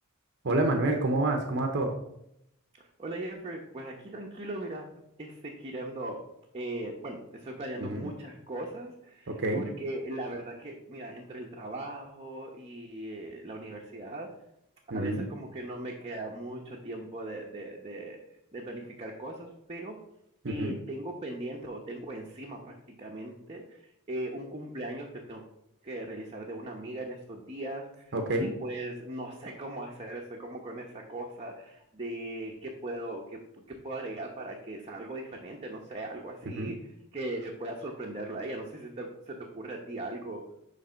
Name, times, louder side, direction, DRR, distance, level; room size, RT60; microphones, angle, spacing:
voice 1, 0.4-2.0 7.8-8.1 9.3-9.7 14.9-15.3 20.4-20.8 28.1-28.5 36.4-36.7, right 2 dB, 55° right, 4 dB, 0.9 m, -28 dB
voice 2, 3.0-4.9 5.2-6.2 6.5-14.3 14.9-18.2 18.5-20.0 20.5-23.8 24.1-25.4 25.8-28.0 28.3-36.8 37.1-40.4, right 1 dB, 30° right, -2 dB, 1.0 m, -39 dB
10.0 x 3.4 x 5.2 m, 0.78 s
head